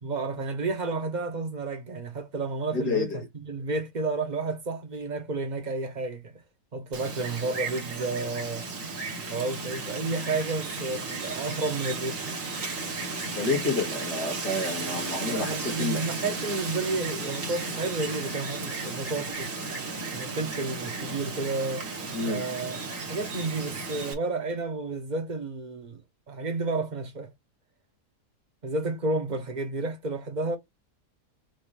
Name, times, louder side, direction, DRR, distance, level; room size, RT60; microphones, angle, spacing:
voice 1, 0.0-6.3 6.7-8.7 9.3-12.4 14.8-19.5 20.1-21.9 22.2-26.0 26.3-27.3 28.6-30.6, right 3 dB, 30° right, 1.0 m, -31 dB
voice 2, 2.7-3.2 13.4-16.0 22.1-22.4, left 3 dB, 85° left, 2.4 m, -29 dB
Wind, 6.9-24.1, right 3 dB, 55° right, 1.6 m, -34 dB
5.9 x 2.7 x 3.3 m
omnidirectional pair, 1.7 m